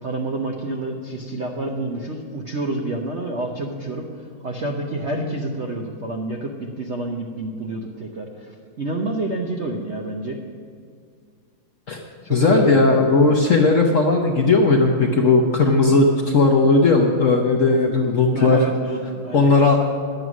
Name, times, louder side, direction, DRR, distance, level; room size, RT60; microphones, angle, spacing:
voice 1, 0.0-4.1 4.4-8.5 8.8-10.4 12.2-12.8 18.3-19.5, right 2 dB, 65° right, 1 dB, 0.7 m, -28 dB
voice 2, 12.3-18.6 19.3-19.8, left 3 dB, 55° left, 1 dB, 0.9 m, -16 dB
11.0 x 8.0 x 6.2 m, 2.2 s
omnidirectional pair, 2.2 m